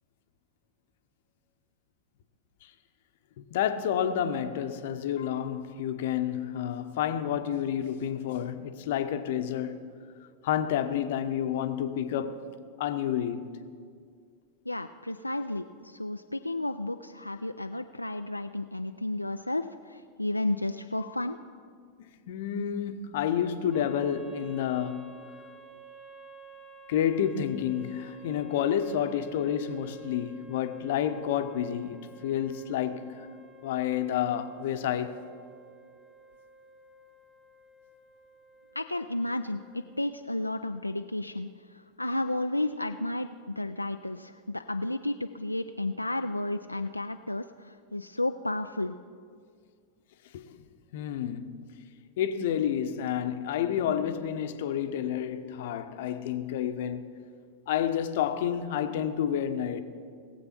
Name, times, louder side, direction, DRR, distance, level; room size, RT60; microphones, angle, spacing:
voice 1, 3.4-9.8 10.4-12.4 12.8-13.5 22.0-25.2 26.9-33.3 33.6-35.2 50.3-50.6 50.9-51.6 52.2-57.0 57.7-59.8, left 9 dB, 55° left, 0.8 m, -30 dB
voice 2, 14.7-21.4 38.7-48.9, left 1 dB, 85° left, 0.3 m, -32 dB
sound 1, 23.7-40.1, right 3 dB, 5° right, 0.9 m, -52 dB
19.0 x 7.8 x 5.9 m
figure-of-eight pair, 90°, 0 cm